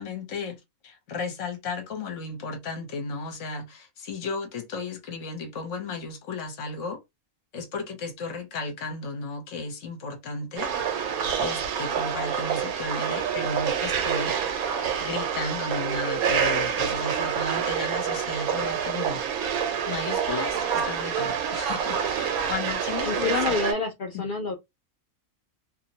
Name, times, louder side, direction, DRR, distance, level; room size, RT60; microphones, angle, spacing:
voice 1, 0.0-7.0 7.5-14.4 15.0-19.2 19.9-23.6 24.1-24.3, left 4 dB, 65° left, 1.1 m, -34 dB
sound 1, 10.6-23.7, right 7 dB, 90° right, 1.1 m, -27 dB
voice 2, 23.0-24.6, left 4 dB, 85° left, 0.4 m, -28 dB
2.6 x 2.1 x 2.7 m
omnidirectional pair, 1.5 m